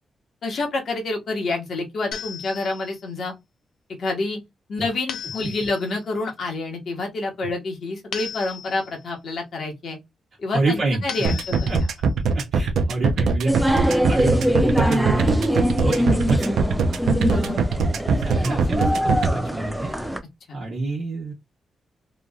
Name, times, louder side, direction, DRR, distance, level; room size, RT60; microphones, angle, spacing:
voice 1, 0.4-3.3 4.0-4.4 4.7-10.0 10.4-11.7 17.3-17.6 20.5-20.6, left 3 dB, 55° left, 1.1 m, -28 dB
sound 1, 2.1-3.0 5.1-6.0 8.1-9.0 11.1-12.0, left 8 dB, 90° left, 0.5 m, -36 dB
voice 2, 10.5-11.4 11.7-11.8 12.3-17.4 17.7-19.9 20.5-21.3, right 2 dB, 55° right, 1.1 m, -28 dB
sound 2, 11.2-19.3, right 4 dB, 85° right, 0.5 m, -21 dB
sound 3, 13.5-20.2, equal, 5° right, 0.4 m, -23 dB
3.0 x 2.4 x 2.2 m
wide cardioid pair, 135°, 0 cm